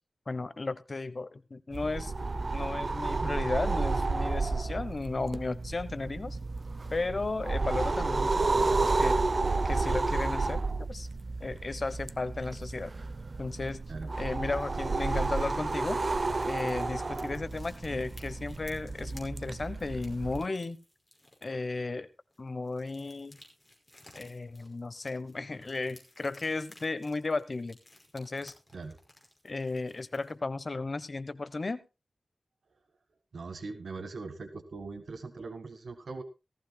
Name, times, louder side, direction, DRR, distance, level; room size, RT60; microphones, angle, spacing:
voice 1, 0.3-2.1 2.5-6.4 6.9-9.2 9.6-10.6 10.9-11.1 11.4-12.9 13.4-13.8 14.2-16.0 16.4-20.8 21.4-22.1 22.4-23.4 24.1-27.8 28.1-28.5 29.4-31.8, left 3 dB, 45° left, 14 dB, 1.1 m, -34 dB
sound 1, 1.7-20.5, right 3 dB, 45° right, 0.7 m, -31 dB
sound 2, 15.0-21.6 22.3-30.3, left 1 dB, 15° left, 5.5 m, -58 dB
voice 2, 33.3-36.2, right 3 dB, 75° right, 9 dB, 1.6 m, -41 dB
17.0 x 14.5 x 2.3 m, 0.27 s
wide cardioid pair, 85°, 0 cm